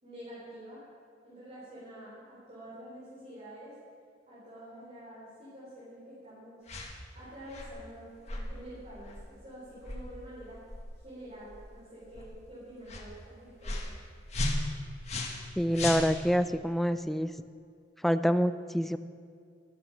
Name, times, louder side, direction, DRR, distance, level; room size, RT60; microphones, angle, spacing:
voice 1, 0.0-0.8 1.2-3.8 4.3-6.6 7.1-10.6 10.9-13.9, equal, 35° right, -9 dB, 4.3 m, -47 dB
sound 1, 6.7-6.9 7.5-7.8 8.3-8.5 9.0-9.2 9.8-10.0 10.7-10.8 11.5-11.7 12.1-12.3 12.9-13.1 13.6-13.9 14.3-15.5 15.7-16.4, left 2 dB, 35° left, 1.8 m, -34 dB
voice 2, 15.6-17.3 18.0-19.0, equal, ahead, 11 dB, 0.4 m, -27 dB
13.5 x 12.5 x 6.0 m, 2.3 s
head